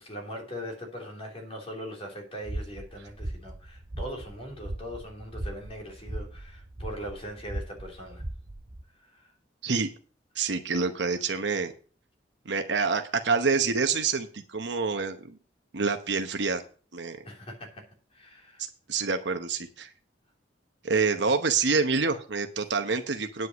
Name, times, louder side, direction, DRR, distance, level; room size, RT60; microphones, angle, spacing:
voice 1, 0.0-8.2 9.1-9.3 17.2-17.7 18.1-18.6, equal, 30° left, 0 dB, 3.3 m, -40 dB
sound 1, 2.4-8.8, right 1 dB, 35° right, 0.7 m, -38 dB
voice 2, 10.4-11.7 12.4-15.4 15.7-16.6 16.9-17.2 18.9-19.9 20.8-23.5, right 4 dB, 70° right, 7 dB, 0.9 m, -27 dB
9.5 x 5.5 x 7.9 m, 0.39 s
head